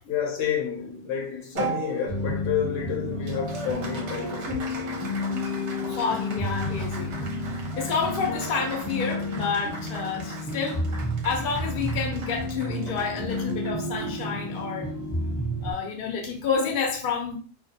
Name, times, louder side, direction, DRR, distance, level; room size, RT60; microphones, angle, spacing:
voice 1, 0.0-5.3 5.9-6.0, left 7 dB, 70° left, 1.0 m, -30 dB
Applause, 1.6-16.2, right 4 dB, 65° right, 0.9 m, -40 dB
sound 1, 2.1-15.7, left 1 dB, 5° left, 0.5 m, -31 dB
voice 2, 5.8-7.2 7.8-10.8 11.2-14.9 15.6-17.4, left 5 dB, 55° left, 0.6 m, -29 dB
2.4 x 2.3 x 2.7 m
omnidirectional pair, 1.4 m